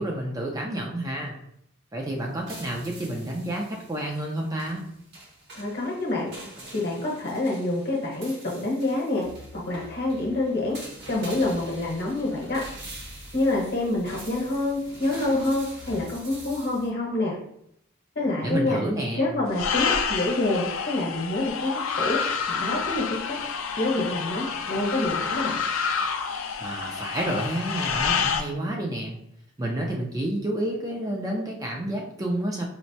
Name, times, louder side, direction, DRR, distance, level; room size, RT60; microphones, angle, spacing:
voice 1, 0.0-1.3 1.9-4.9 18.4-19.3 26.6-29.2 29.6-32.6, right 1 dB, 15° right, -1 dB, 0.4 m, -29 dB
sound 1, 2.2-16.9, right 1 dB, 55° right, 0.9 m, -44 dB
voice 2, 5.5-6.3 6.7-9.3 9.5-10.8 11.1-12.6 13.3-17.3 18.1-18.8 19.2-22.2 22.5-23.4 23.8-25.6, left 2 dB, 50° left, -2 dB, 0.9 m, -27 dB
sound 2, 19.5-28.4, left 6 dB, 80° left, 0.4 m, -28 dB
4.3 x 2.0 x 2.6 m, 0.74 s
head